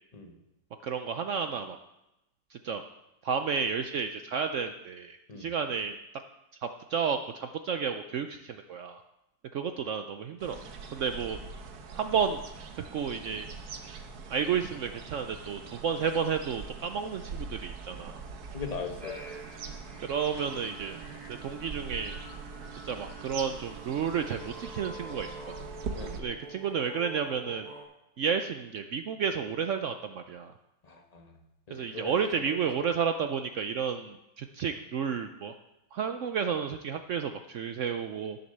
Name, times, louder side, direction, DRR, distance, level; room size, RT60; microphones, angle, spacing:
voice 1, 0.8-1.8 2.5-2.8 3.2-6.0 6.6-9.0 9.5-11.4 11.9-12.4 12.7-13.5 14.3-18.2 20.0-21.0 21.3-22.2 22.8-25.3 26.2-27.7 28.2-30.5 31.7-35.5 35.9-38.4, right 6 dB, 85° right, 7 dB, 0.6 m, -31 dB
sound 1, 10.4-26.2, right 4 dB, 60° right, 1.4 m, -43 dB
voice 2, 18.5-19.4 25.9-26.2 30.8-31.4 31.7-32.9, left 5 dB, 25° left, 3 dB, 1.2 m, -40 dB
sound 2, 19.0-27.8, right 2 dB, 20° right, 2.6 m, -46 dB
11.0 x 7.1 x 6.7 m, 0.91 s
omnidirectional pair, 2.0 m